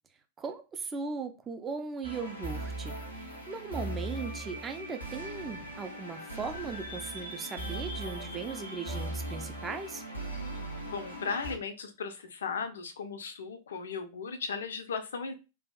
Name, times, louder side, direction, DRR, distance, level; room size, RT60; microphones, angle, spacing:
voice 1, 0.4-3.0 3.5-10.0, right 5 dB, 20° right, 7 dB, 0.4 m, -38 dB
sound 1, 2.0-11.6, right 1 dB, 90° left, 0.9 m, -39 dB
voice 2, 10.9-15.3, left 5 dB, 65° left, 8 dB, 0.5 m, -36 dB
3.3 x 2.3 x 2.2 m, 0.29 s
figure-of-eight pair, 90°, 0 cm